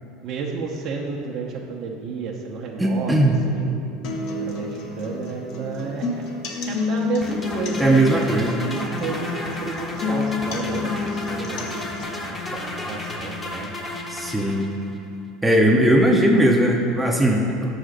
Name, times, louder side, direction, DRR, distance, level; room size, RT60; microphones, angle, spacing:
voice 1, 0.2-3.8 4.4-6.2 6.7-13.8, right 4 dB, 55° right, -2 dB, 0.7 m, -32 dB
voice 2, 2.8-3.3 7.8-8.6 14.1-14.6 15.4-17.8, right 1 dB, 5° right, -1 dB, 0.6 m, -18 dB
sound 1, 4.0-12.0, left 4 dB, 60° left, 0.9 m, -29 dB
sound 2, 7.2-15.0, left 2 dB, 20° left, 0.9 m, -33 dB
5.6 x 5.0 x 6.4 m, 2.6 s
hypercardioid pair, 95°, 0 cm